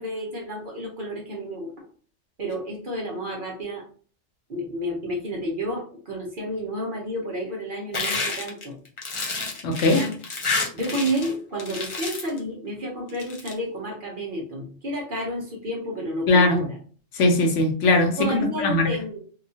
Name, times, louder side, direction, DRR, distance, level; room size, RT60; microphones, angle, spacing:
voice 1, 0.0-1.7 2.4-3.8 4.5-8.8 9.9-10.2 10.7-16.8 18.2-19.2, equal, 50° right, -2 dB, 0.8 m, -30 dB
sound 1, 7.9-11.3 11.6-12.4 13.1-13.5, left 3 dB, 50° left, 0.3 m, -29 dB
voice 2, 9.6-10.0 16.3-16.6 17.1-18.9, left 2 dB, 75° left, 3 dB, 1.0 m, -20 dB
2.8 x 2.3 x 2.7 m, 0.42 s
omnidirectional pair, 1.3 m